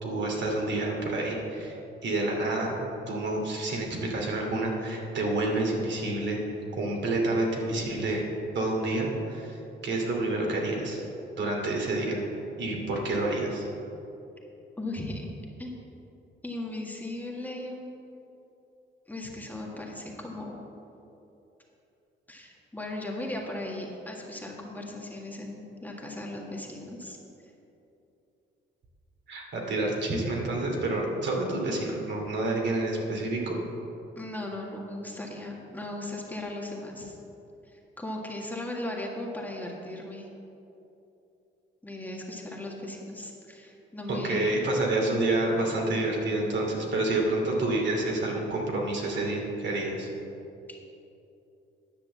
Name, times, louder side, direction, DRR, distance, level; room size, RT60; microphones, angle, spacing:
voice 1, 0.0-1.8 2.0-2.8 3.1-6.4 6.7-8.3 8.5-11.0 11.4-12.2 12.6-13.7 29.3-33.6 44.2-50.1, right 2 dB, 65° right, -1 dB, 2.5 m, -28 dB
voice 2, 14.8-15.3 15.6-15.8 16.4-17.9 19.1-20.6 22.3-27.2 34.2-37.2 37.7-40.3 41.8-44.4, left 1 dB, 10° left, -1 dB, 1.7 m, -37 dB
10.5 x 6.6 x 7.4 m, 2.9 s
cardioid pair, 90°, 20 cm